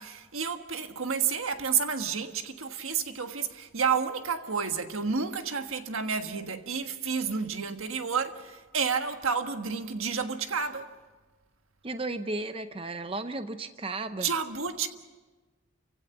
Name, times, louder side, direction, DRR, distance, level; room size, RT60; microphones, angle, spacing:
voice 1, 0.0-10.9 14.2-14.9, right 6 dB, 85° right, 1.5 m, -30 dB
voice 2, 11.8-14.3, right 2 dB, 25° right, 0.7 m, -34 dB
29.0 x 16.5 x 7.2 m
head